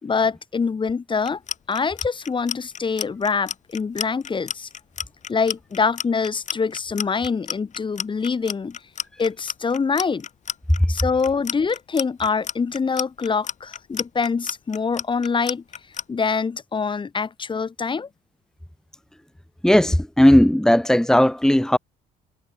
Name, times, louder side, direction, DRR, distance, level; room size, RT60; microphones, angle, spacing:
voice 1, 0.0-1.4 1.7-4.7 5.3-8.8 9.2-10.3 10.9-15.6 16.1-18.1, left 5 dB, 30° left, 4.1 m, -24 dB
Clock, 1.2-16.0, left 8 dB, 45° left, 6.2 m, -31 dB
voice 2, 19.6-21.8, left 1 dB, 5° left, 2.7 m, -16 dB
cardioid pair, 110°, 17 cm